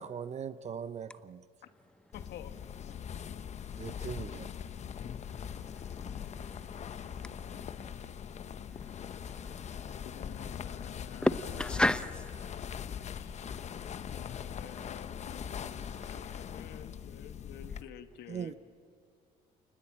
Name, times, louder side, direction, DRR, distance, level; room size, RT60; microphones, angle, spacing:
voice 1, 0.0-1.4 3.8-4.5 8.0-8.1 15.8-16.1 18.3-18.5, right 7 dB, 40° right, 14 dB, 0.8 m, -41 dB
voice 2, 2.1-3.0 7.2-8.0 10.0-11.9 13.1-13.4 14.1-18.5, left 9 dB, 75° left, 8 dB, 1.6 m, -50 dB
sound 1, 2.1-17.8, left 8 dB, 40° left, 0.9 m, -41 dB
voice 3, 6.1-6.8 7.2-7.3 7.6-7.8 9.9-10.0 11.2-12.3 13.5-13.6, left 1 dB, 5° left, 13 dB, 0.9 m, -32 dB
28.5 x 20.0 x 8.7 m, 2.3 s
cardioid pair, 110°, 17 cm